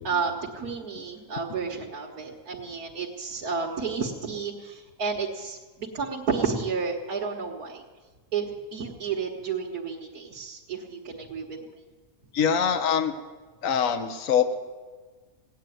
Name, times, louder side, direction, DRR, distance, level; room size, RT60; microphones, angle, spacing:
voice 1, 0.0-7.8 8.3-11.6, right 5 dB, 85° right, -4 dB, 1.8 m, -31 dB
voice 2, 12.3-13.1 13.6-14.5, left 7 dB, 65° left, 8 dB, 1.4 m, -24 dB
17.0 x 9.0 x 9.2 m, 1.4 s
omnidirectional pair, 1.6 m